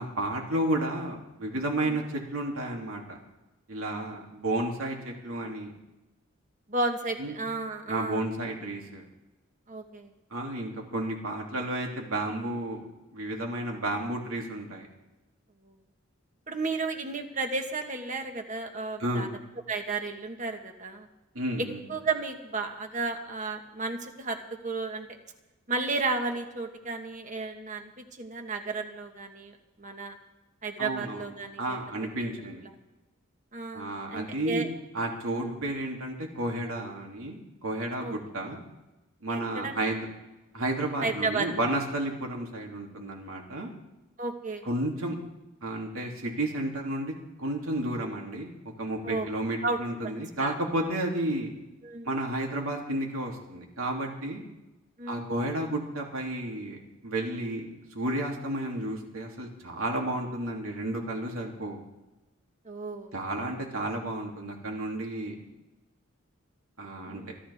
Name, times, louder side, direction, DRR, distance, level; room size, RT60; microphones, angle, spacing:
voice 1, 0.0-3.2 3.7-5.7 7.2-7.3 7.9-9.0 10.3-12.8 13.1-14.9 19.0-19.3 21.3-21.8 30.8-31.2 31.6-32.6 33.7-38.6 39.2-40.1 40.5-43.7 44.6-45.2 45.6-51.5 52.0-54.4 55.1-56.8 57.0-57.7 57.9-61.8 63.1-65.3 66.8-67.2, right 1 dB, 85° right, 0 dB, 2.9 m, -32 dB
voice 2, 6.7-8.3 9.7-10.1 15.6-15.7 16.5-19.3 19.7-21.1 21.9-24.4 24.6-25.1 25.7-30.2 30.6-31.8 32.6-32.7 33.5-34.7 35.3-35.6 38.0-38.1 39.3-39.8 41.0-41.5 44.2-44.6 49.0-49.3 49.6-49.8 50.4-50.5 51.8-52.1 55.0-55.3 62.6-63.1 67.0-67.3, right 3 dB, 35° right, 5 dB, 1.5 m, -33 dB
25.5 x 12.5 x 3.6 m, 1.1 s
head